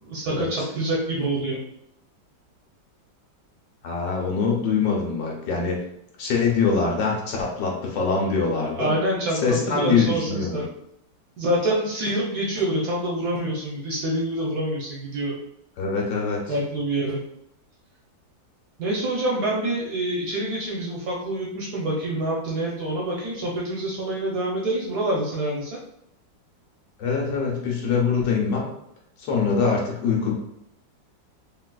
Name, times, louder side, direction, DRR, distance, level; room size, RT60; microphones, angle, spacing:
voice 1, 0.0-1.6 8.8-10.6 11.4-15.3 16.5-17.2 18.8-25.8, right 1 dB, 65° right, -3 dB, 1.0 m, -26 dB
voice 2, 3.8-5.8 6.2-8.9 9.3-10.6 15.8-16.5 27.0-28.7 29.2-30.3, left 5 dB, 70° left, -1 dB, 1.4 m, -23 dB
3.8 x 2.5 x 2.2 m, 0.76 s
omnidirectional pair, 2.1 m